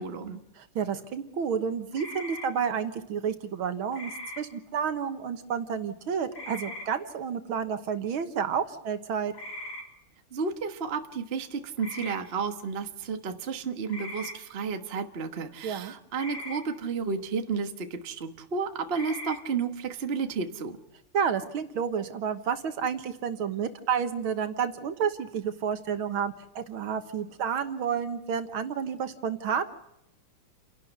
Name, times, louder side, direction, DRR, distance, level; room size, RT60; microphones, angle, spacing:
voice 1, 0.0-0.4 10.3-20.8, right 5 dB, 35° right, 7 dB, 1.3 m, -32 dB
voice 2, 0.6-4.1 4.4-9.3 15.6-15.9 21.1-29.7, right 7 dB, 70° right, 9 dB, 2.1 m, -30 dB
sound 1, 1.9-2.5 3.9-4.4 6.3-6.9 9.3-9.8 11.8-12.2 13.9-14.3 16.2-16.6 18.9-19.4, left 1 dB, 60° left, 4.9 m, -39 dB
29.5 x 11.5 x 8.1 m, 0.81 s
omnidirectional pair, 2.4 m